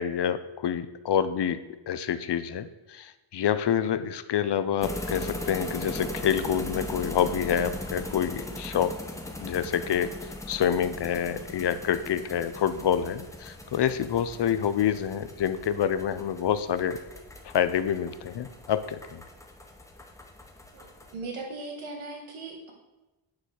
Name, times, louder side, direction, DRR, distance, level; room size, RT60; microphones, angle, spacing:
voice 1, 0.0-1.6 1.9-8.9 9.4-17.0 17.4-19.2, left 9 dB, 55° left, 12 dB, 0.6 m, -27 dB
sound 1, 4.8-21.1, left 1 dB, 5° left, 0.7 m, -39 dB
voice 2, 20.7-22.7, right 3 dB, 85° right, 1 dB, 1.8 m, -38 dB
9.6 x 6.4 x 4.4 m, 1.1 s
wide cardioid pair, 170°, 49 cm